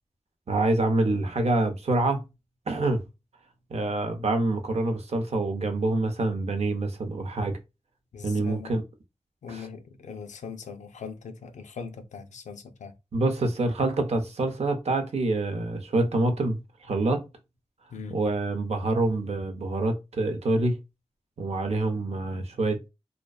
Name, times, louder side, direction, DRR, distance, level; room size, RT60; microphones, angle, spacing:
voice 1, 0.5-2.2 2.7-3.0 3.7-7.6 8.2-8.8 9.5-9.7 13.1-17.3 18.1-20.8 21.4-22.9, right 2 dB, 60° right, 0.6 m, -26 dB
voice 2, 8.1-8.8 9.4-12.9 17.9-18.2, left 5 dB, 80° left, 0.4 m, -40 dB
2.5 x 2.1 x 2.3 m
cardioid pair, 40°, 12 cm